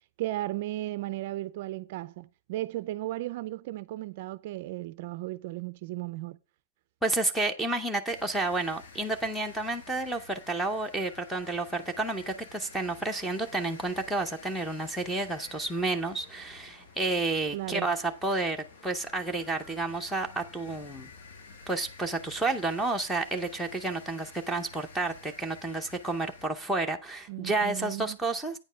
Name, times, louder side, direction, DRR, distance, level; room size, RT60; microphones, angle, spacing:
voice 1, 0.2-6.4 17.5-17.9 27.3-28.2, right 16 dB, 40° right, 0.4 m, -35 dB
voice 2, 7.0-21.1 21.7-28.6, right 2 dB, ahead, 0.7 m, -30 dB
sound 1, 8.1-26.5, left 4 dB, 70° left, 1.7 m, -51 dB
9.2 x 5.2 x 5.6 m
supercardioid pair, 175°, 0 cm